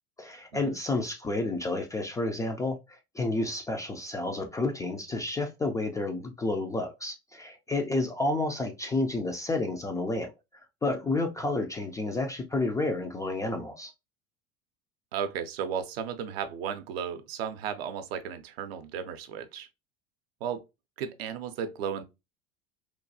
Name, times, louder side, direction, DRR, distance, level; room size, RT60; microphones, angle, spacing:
voice 1, 0.2-10.3 10.8-13.9, left 2 dB, 10° left, 0.3 m, -30 dB
voice 2, 15.1-19.7 20.4-20.6 21.0-22.0, right 7 dB, 60° right, 0.6 m, -34 dB
3.1 x 2.2 x 2.5 m
figure-of-eight pair, 80°, 34 cm